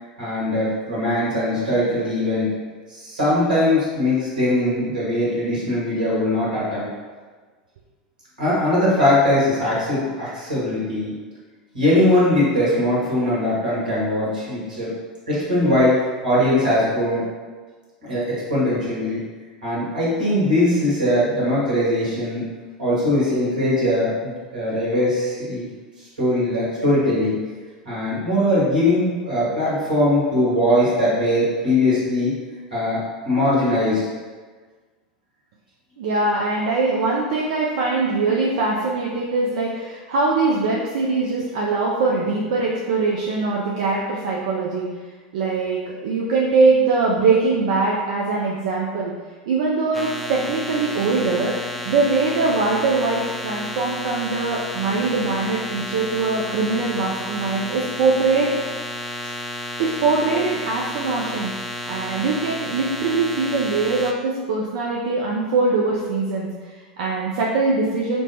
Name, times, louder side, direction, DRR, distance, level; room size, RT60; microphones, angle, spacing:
voice 1, 0.2-2.5 2.9-6.9 8.4-11.1 11.7-14.9 15.3-17.2 18.0-19.2 19.6-22.5 22.8-25.7 26.2-27.4 27.8-32.3 32.7-34.0, left 1 dB, 80° right, -8 dB, 1.4 m, -20 dB
voice 2, 36.0-44.9 45.3-49.1 49.5-51.6 51.8-58.8 59.8-61.5 61.9-66.5 66.7-68.2, right 3 dB, 60° right, -3 dB, 0.4 m, -22 dB
sound 1, 49.9-64.1, equal, ahead, 0.3 m, -32 dB
4.4 x 2.1 x 2.7 m, 1.4 s
figure-of-eight pair, 85°, 4 cm